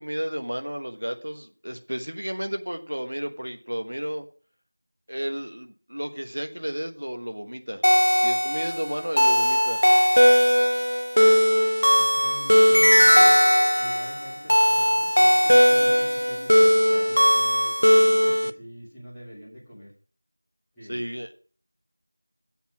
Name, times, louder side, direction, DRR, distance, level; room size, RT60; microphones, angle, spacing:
voice 1, 0.0-4.3 5.1-7.8 8.1-9.8 20.9-21.3, equal, 35° right, 6 dB, 1.1 m, -32 dB
sound 1, 7.8-18.5, equal, 55° left, 0.5 m, -18 dB
voice 2, 11.9-13.3 13.8-19.9 20.7-21.0, equal, ahead, -15 dB, 0.8 m, -44 dB
7.5 x 7.2 x 6.1 m, 0.41 s
figure-of-eight pair, 180°, 0 cm